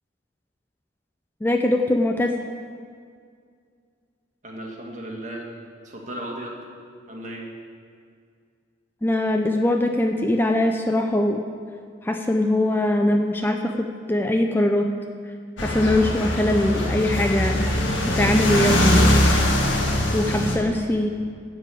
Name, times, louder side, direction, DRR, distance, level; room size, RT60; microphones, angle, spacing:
voice 1, 1.4-2.4 9.0-11.4 12.0-14.9 15.6-19.3 20.1-21.1, left 1 dB, 10° left, 3 dB, 0.4 m, -22 dB
voice 2, 4.4-5.5 5.8-6.6 7.1-7.4, right 1 dB, 40° right, -1 dB, 1.7 m, -35 dB
sound 1, 15.6-20.6, left 1 dB, 90° left, 1.6 m, -21 dB
12.5 x 4.9 x 8.4 m, 2.2 s
head